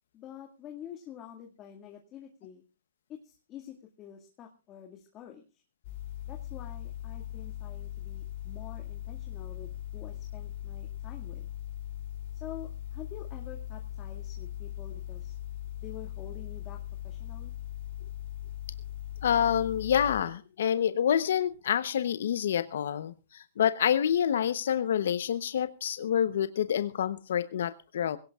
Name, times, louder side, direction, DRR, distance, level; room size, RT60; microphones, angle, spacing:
voice 1, 0.1-2.6 3.1-5.6 6.3-11.5 12.4-15.3 15.8-16.8 17.0-17.5, left 10 dB, 25° left, 2 dB, 2.0 m, -47 dB
sound 1, 5.8-20.2, left 12 dB, 50° left, 3.0 m, -40 dB
voice 2, 19.2-28.2, left 9 dB, 75° left, 13 dB, 0.8 m, -27 dB
21.0 x 17.5 x 2.4 m, 0.32 s
hypercardioid pair, 145°, 0 cm